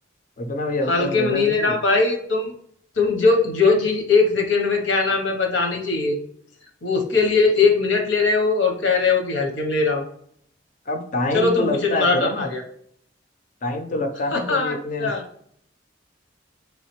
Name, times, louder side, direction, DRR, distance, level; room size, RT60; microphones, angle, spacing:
voice 1, 0.4-1.8 10.9-12.5 13.6-15.1, left 2 dB, 45° left, 6 dB, 0.5 m, -26 dB
voice 2, 0.9-2.5 3.0-6.2 6.8-10.0 11.3-12.6 14.3-14.7 15.0-15.2, left 4 dB, 90° left, 3 dB, 1.0 m, -20 dB
3.5 x 3.2 x 3.1 m, 0.65 s
head